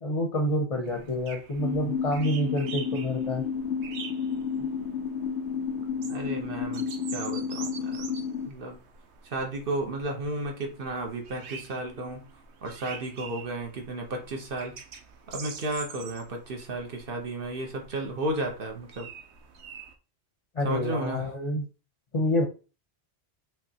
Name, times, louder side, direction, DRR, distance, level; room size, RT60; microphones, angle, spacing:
voice 1, 0.0-3.4 20.5-21.6 22.1-22.4, left 1 dB, 35° left, 3 dB, 0.7 m, -27 dB
sound 1, 0.8-20.0, right 6 dB, 80° right, 1.0 m, -46 dB
sound 2, 1.6-8.5, left 6 dB, 70° left, 0.8 m, -31 dB
voice 2, 6.1-8.0 8.5-8.8 9.2-12.2 12.6-14.7 15.3-19.1 20.6-21.3, right 2 dB, 55° right, 3 dB, 1.2 m, -33 dB
5.6 x 3.2 x 2.9 m, 0.34 s
omnidirectional pair, 1.2 m